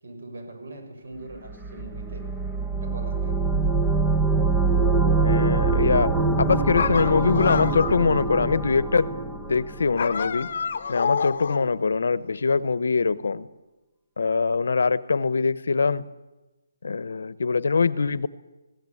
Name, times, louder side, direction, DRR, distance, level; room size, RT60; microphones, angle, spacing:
voice 1, 0.0-2.3 2.8-3.5, right 2 dB, 60° right, 4 dB, 7.2 m, -41 dB
sound 1, 1.5-10.3, right 3 dB, 5° right, 0.6 m, -24 dB
voice 2, 5.2-6.1 6.4-9.1 9.5-10.5 10.9-13.5 14.2-16.0 16.8-18.3, left 4 dB, 65° left, 18 dB, 0.9 m, -23 dB
sound 2, 6.7-8.1 10.0-11.8, left 6 dB, 40° left, 0.9 m, -28 dB
20.0 x 16.5 x 8.6 m, 1.1 s
hypercardioid pair, 175°, 0 cm